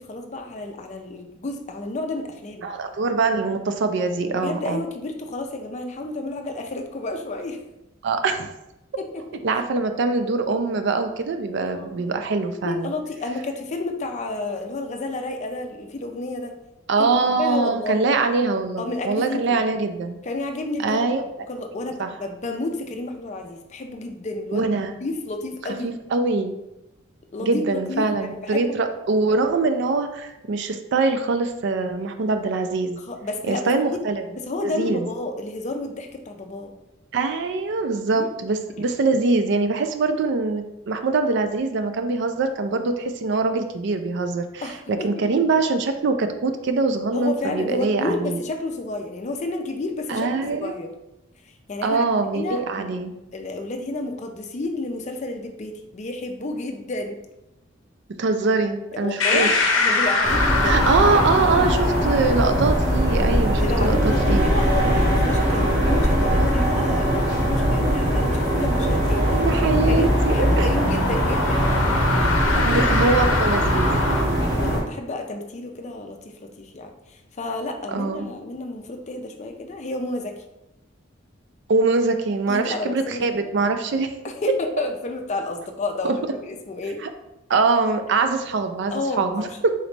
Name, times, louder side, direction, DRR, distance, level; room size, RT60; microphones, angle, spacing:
voice 1, 0.0-2.7 4.3-7.6 9.0-9.4 11.6-12.0 12.6-16.5 17.0-17.1 17.4-18.1 18.8-19.6 20.2-21.1 21.5-24.7 25.0-26.0 27.3-28.8 33.1-34.0 34.4-36.7 38.1-38.3 44.6-45.1 47.1-50.9 51.7-52.0 52.3-52.9 53.3-57.2 59.0-61.2 61.6-61.8 63.6-71.9 72.5-72.9 74.2-80.3 82.5-83.5 84.2-87.0 88.9-89.6, left 2 dB, 35° left, 4 dB, 0.5 m, -31 dB
voice 2, 2.6-4.9 8.0-8.5 9.4-12.9 16.9-20.2 20.8-21.2 22.0-22.1 24.5-24.9 25.8-26.5 27.4-33.0 33.5-34.2 34.6-35.1 37.1-48.4 50.1-50.7 51.8-53.1 58.2-59.7 60.6-64.5 69.3-70.7 72.7-74.0 77.9-78.3 81.7-84.1 86.0-86.2 87.0-87.1 87.5-89.7, right 3 dB, 60° right, 7 dB, 0.4 m, -23 dB
sound 1, 59.2-74.2, left 3 dB, 80° left, 0.6 m, -26 dB
sound 2, 60.2-74.8, equal, 20° right, 1.2 m, -21 dB
3.9 x 3.1 x 3.2 m, 0.91 s
head